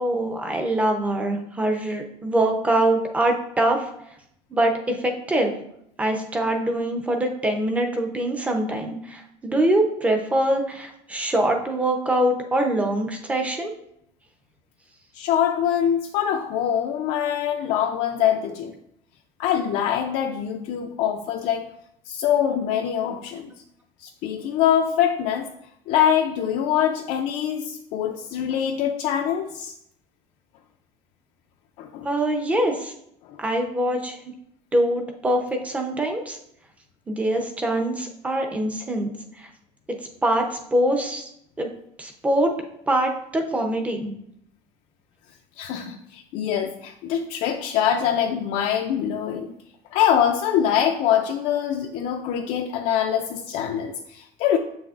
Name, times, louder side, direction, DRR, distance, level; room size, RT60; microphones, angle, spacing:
voice 1, 0.0-3.9 4.5-5.5 6.0-13.7 32.0-32.9 33.4-34.3 34.7-36.4 37.1-39.1 39.4-39.5 40.2-41.3 41.6-41.7 42.0-42.6 42.9-44.1, right 1 dB, 10° right, 3 dB, 0.6 m, -23 dB
voice 2, 15.1-18.7 19.4-21.7 22.1-23.5 24.0-25.5 25.9-29.7 31.8-32.1 33.3-33.4 45.6-49.5 49.9-54.6, left 9 dB, 60° left, 3 dB, 0.5 m, -24 dB
7.3 x 6.0 x 2.5 m, 0.74 s
cardioid pair, 170°, 13 cm